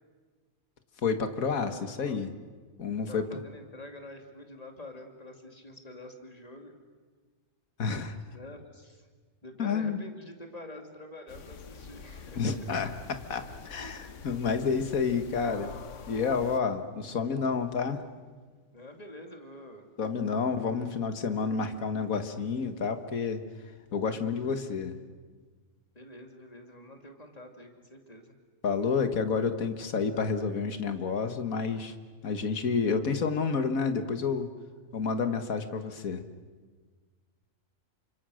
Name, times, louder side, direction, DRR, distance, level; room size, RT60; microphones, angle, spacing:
voice 1, 1.0-2.3 2.8-3.2 7.8-8.1 9.6-10.0 12.4-18.0 20.0-23.4 23.9-25.0 28.6-31.9 32.2-34.5 34.9-36.2, left 5 dB, 85° left, 9 dB, 1.9 m, -29 dB
voice 2, 1.6-2.2 3.1-6.7 8.3-9.1 9.4-12.7 13.4-13.5 15.5-15.8 18.7-19.9 25.9-28.3, left 1 dB, 30° left, 4 dB, 2.7 m, -47 dB
sound 1, 11.3-16.6, left 5 dB, 65° left, 1.4 m, -46 dB
29.0 x 25.5 x 6.4 m, 1.5 s
omnidirectional pair, 1.4 m